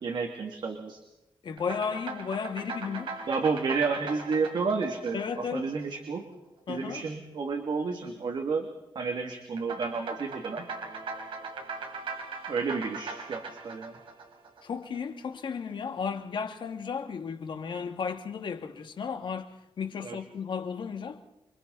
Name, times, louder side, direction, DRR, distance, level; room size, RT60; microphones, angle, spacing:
voice 1, 0.0-1.0 3.3-6.3 6.7-8.7 8.9-10.7 12.5-13.9 20.0-20.2, right 4 dB, 60° right, 2.5 m, -31 dB
voice 2, 1.4-3.2 5.1-5.7 6.7-7.1 14.6-19.5 19.8-21.2, left 6 dB, 65° left, 2.3 m, -34 dB
sound 1, 1.6-6.2 9.6-15.0, right 4 dB, 80° right, 3.7 m, -40 dB
28.0 x 25.0 x 4.1 m
wide cardioid pair, 140°, 9 cm